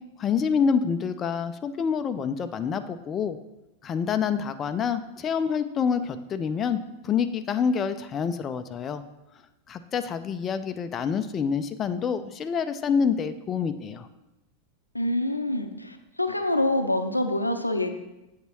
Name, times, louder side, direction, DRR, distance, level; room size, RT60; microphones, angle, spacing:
voice 1, 0.2-3.4 3.8-9.0 9.7-14.1, left 6 dB, 25° left, 10 dB, 0.3 m, -27 dB
voice 2, 14.9-17.9, left 1 dB, 85° left, 8 dB, 0.5 m, -26 dB
8.0 x 7.3 x 3.0 m, 0.96 s
figure-of-eight pair, 90°, 0 cm